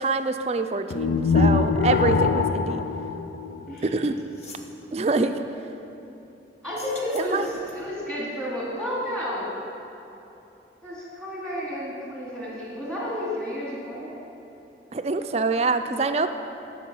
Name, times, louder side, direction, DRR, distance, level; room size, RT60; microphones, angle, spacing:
voice 1, 0.0-2.8 3.8-4.1 4.9-5.3 7.1-7.5 14.9-16.3, right 3 dB, 35° right, 8 dB, 0.4 m, -25 dB
sound 1, 0.9-4.1, left 4 dB, 80° left, 0.4 m, -23 dB
sound 2, 3.8-3.9 4.2-4.7 6.6-8.0, left 2 dB, 35° left, 1.0 m, -45 dB
voice 2, 6.6-9.5 10.8-14.1, left 1 dB, 5° left, -7 dB, 2.5 m, -31 dB
11.5 x 5.5 x 7.0 m, 2.9 s
head